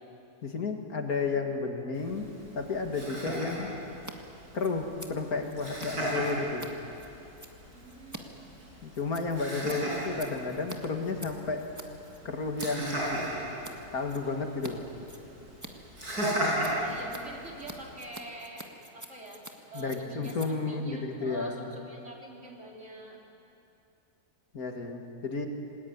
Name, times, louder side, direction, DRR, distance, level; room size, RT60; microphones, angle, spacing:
voice 1, 0.4-3.7 4.5-6.7 8.8-11.6 12.2-13.3 13.9-14.9 19.7-21.8 24.5-25.5, left 4 dB, 70° left, 3 dB, 2.6 m, -32 dB
Laughter, 1.9-17.9, equal, 85° right, 6.5 m, -37 dB
Scissors, 4.0-4.1 4.4-12.7 13.0-13.8 14.1-14.7 15.0-21.8, right 1 dB, 10° right, 1.7 m, -47 dB
voice 2, 7.7-8.8 16.6-18.7 18.9-19.4 19.7-23.2, right 2 dB, 50° right, -1 dB, 3.8 m, -45 dB
27.0 x 20.5 x 9.6 m, 2.8 s
omnidirectional pair, 1.6 m